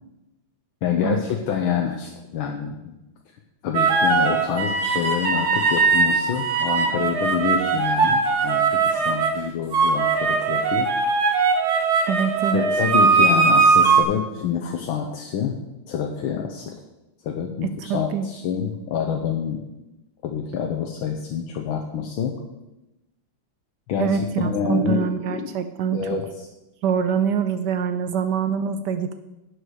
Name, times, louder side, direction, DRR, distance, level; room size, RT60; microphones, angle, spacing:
voice 1, 0.8-3.0 3.6-10.9 12.5-15.6 15.9-16.7 17.2-19.6 20.2-22.3 23.9-25.5 25.9-26.2, left 7 dB, 85° left, 2 dB, 1.7 m, -27 dB
sound 1, 3.7-9.3 9.7-14.0, right 4 dB, 55° right, 1.7 m, -20 dB
voice 2, 12.1-12.6 17.6-18.6 24.0-26.2 26.8-29.1, right 7 dB, 70° right, 10 dB, 1.1 m, -25 dB
11.0 x 8.3 x 4.8 m, 0.96 s
omnidirectional pair, 2.2 m